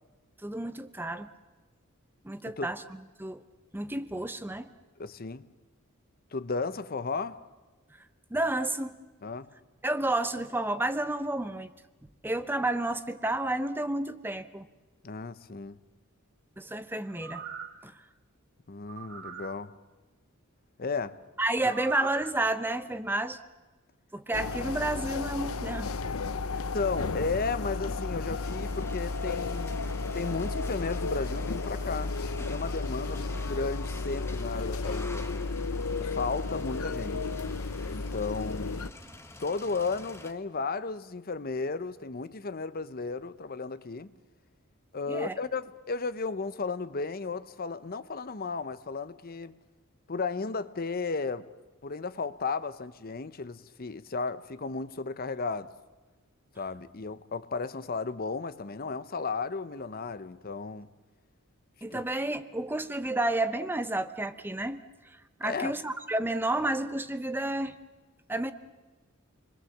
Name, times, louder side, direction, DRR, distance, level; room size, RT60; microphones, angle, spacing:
voice 1, 0.4-1.3 2.2-2.8 3.2-3.4 3.7-4.7 8.3-9.0 9.8-11.7 12.2-14.7 16.6-17.4 17.8-18.0 21.4-23.4 24.1-25.9 35.9-36.0 45.1-45.3 61.8-64.8 65.4-67.8 68.3-68.5, right 2 dB, 10° right, 0.8 m, -30 dB
voice 2, 5.0-5.5 6.3-7.4 9.2-9.5 15.0-15.8 18.7-19.7 20.8-21.2 21.6-21.7 26.7-29.7 30.1-32.1 32.5-35.5 36.0-37.3 37.9-38.8 39.4-44.1 44.9-49.5 50.1-51.5 51.8-55.7 56.6-60.9 61.9-62.0 65.4-65.7, left 4 dB, 45° left, 0.8 m, -34 dB
sound 1, 17.1-17.8 18.9-19.5 21.6-22.3 22.8-22.9, right 7 dB, 65° right, 1.5 m, -42 dB
sound 2, 24.3-38.9, left 3 dB, 90° left, 0.8 m, -33 dB
sound 3, 28.4-40.3, left 2 dB, 10° left, 1.3 m, -48 dB
28.0 x 22.0 x 7.3 m
head